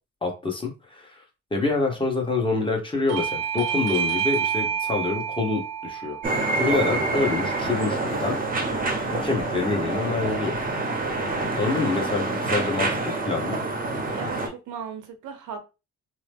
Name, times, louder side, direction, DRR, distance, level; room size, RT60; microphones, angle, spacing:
voice 1, 0.2-1.2 1.5-8.4 9.1-10.6 11.5-13.6, left 3 dB, 15° left, 1.1 m, -27 dB
Bell / Doorbell, 3.1-8.3, right 8 dB, 55° right, 0.5 m, -29 dB
sound 1, 6.2-14.5, right 3 dB, 30° right, 0.8 m, -27 dB
voice 2, 14.1-15.6, right 7 dB, 85° right, 0.8 m, -38 dB
2.9 x 2.0 x 3.4 m
cardioid pair, 90°, 30 cm